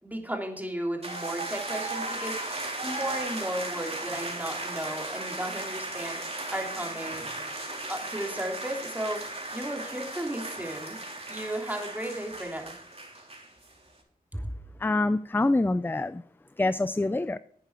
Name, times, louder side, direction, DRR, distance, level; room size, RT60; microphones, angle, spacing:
voice 1, 0.0-7.2 7.9-11.0 11.3-12.7 14.4-14.5, right 1 dB, 10° right, 2 dB, 3.1 m, -35 dB
sound 1, 1.0-13.7, right 2 dB, 40° right, 3.5 m, -36 dB
voice 2, 14.8-16.2 16.6-17.4, left 2 dB, 15° left, 15 dB, 0.5 m, -25 dB
11.5 x 9.1 x 4.7 m, 0.62 s
cardioid pair, 40°, 15 cm